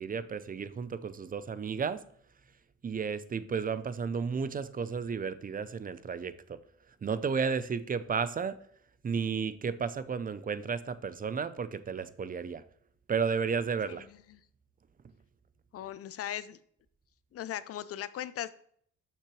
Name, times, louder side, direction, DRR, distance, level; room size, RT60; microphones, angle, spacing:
voice 1, 0.0-2.0 2.8-6.6 7.0-8.6 9.0-12.6 13.1-14.1, right 6 dB, 30° right, 14 dB, 0.5 m, -33 dB
voice 2, 13.9-14.4 15.7-16.6 17.3-18.5, left 11 dB, 50° left, 16 dB, 0.5 m, -39 dB
6.6 x 5.9 x 3.1 m, 0.62 s
cardioid pair, 90°, 30 cm